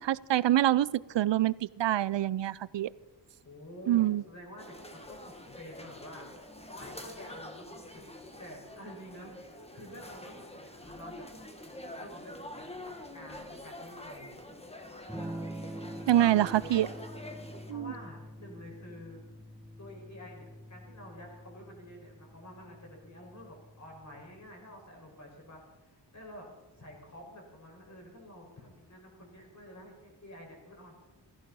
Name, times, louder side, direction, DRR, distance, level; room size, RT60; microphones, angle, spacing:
voice 1, 0.0-2.9 3.9-4.2 16.1-16.9 17.7-17.9, right 13 dB, 75° right, 21 dB, 0.5 m, -26 dB
voice 2, 3.4-8.1 8.4-11.3 12.0-14.5 17.7-19.2 19.8-26.5 26.8-30.9, equal, 40° left, -1 dB, 5.2 m, -49 dB
sound 1, 4.6-17.7, left 1 dB, 15° left, 1.6 m, -46 dB
Electric guitar / Strum, 15.1-24.8, equal, 5° right, 1.1 m, -46 dB
16.5 x 14.5 x 5.6 m, 1.1 s
wide cardioid pair, 110°, 44 cm